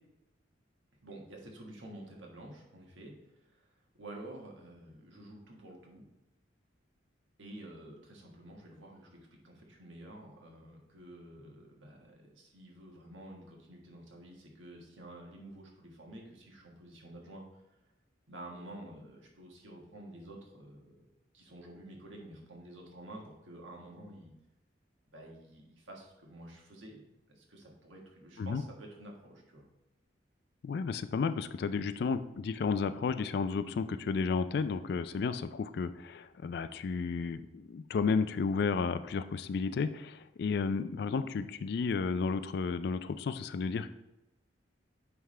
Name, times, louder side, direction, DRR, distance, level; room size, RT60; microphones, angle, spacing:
voice 1, 1.0-3.1 3.5-3.7 4.0-6.1 7.4-17.4 18.3-21.0 21.3-24.3 25.1-29.6, right 1 dB, 85° right, -1 dB, 1.4 m, -50 dB
voice 2, 30.6-43.9, left 5 dB, 55° left, 12 dB, 0.3 m, -32 dB
9.3 x 3.5 x 3.2 m, 0.92 s
head